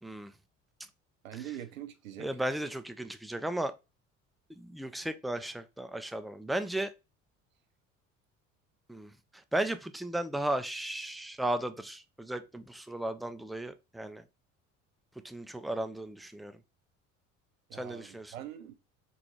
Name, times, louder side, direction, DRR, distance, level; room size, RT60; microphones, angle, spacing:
voice 1, 1.2-2.3 17.7-18.7, right 11 dB, 85° right, 0.7 m, -43 dB
voice 2, 2.2-3.7 4.5-6.9 8.9-9.1 9.5-14.2 15.2-16.5 17.7-18.3, right 1 dB, ahead, 0.3 m, -35 dB
3.9 x 3.4 x 3.1 m
hypercardioid pair, 60°, 40 cm